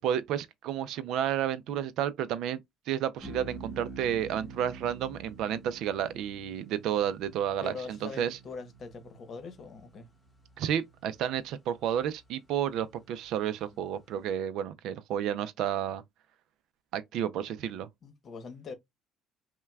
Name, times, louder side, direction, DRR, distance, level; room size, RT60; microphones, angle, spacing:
voice 1, 0.0-2.6 2.9-8.4 10.6-16.0 16.9-17.9, right 9 dB, 65° right, 0.4 m, -31 dB
sound 1, 3.2-13.7, right 3 dB, 5° left, 1.1 m, -49 dB
voice 2, 7.6-10.1 18.0-18.7, left 4 dB, 40° left, 0.9 m, -42 dB
5.6 x 2.2 x 2.3 m
cardioid pair, 130°, 0 cm